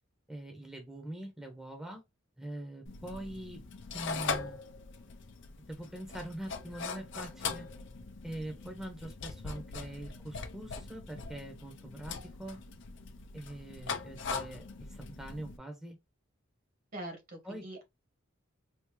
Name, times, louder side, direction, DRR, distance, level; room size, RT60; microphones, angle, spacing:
voice 1, 0.3-2.0 2.4-3.6 3.9-4.6 5.7-7.7 8.2-12.6 13.3-16.0 17.4-17.6, right 1 dB, 5° right, 0.9 m, -43 dB
sound 1, 2.9-15.6, left 5 dB, 65° left, 0.6 m, -41 dB
voice 2, 16.9-17.8, right 1 dB, 45° right, 1.3 m, -43 dB
3.5 x 2.7 x 2.9 m
head